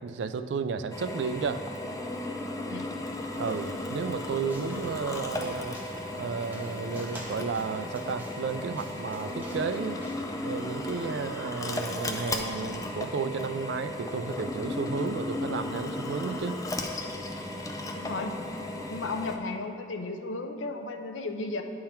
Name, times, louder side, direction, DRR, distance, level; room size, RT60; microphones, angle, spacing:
voice 1, 0.0-1.6 3.4-5.8 6.2-10.0 10.4-16.6, right 5 dB, 65° right, 10 dB, 0.3 m, -33 dB
Drill, 0.9-19.4, left 2 dB, 20° left, 0.4 m, -35 dB
sound 1, 2.7-10.9, right 1 dB, 10° right, 0.7 m, -48 dB
sound 2, 7.2-12.2, right 1 dB, 40° right, 1.5 m, -55 dB
voice 2, 17.9-18.4 18.9-21.6, left 3 dB, 85° left, 5 dB, 0.6 m, -34 dB
10.0 x 3.8 x 4.3 m, 2.3 s
head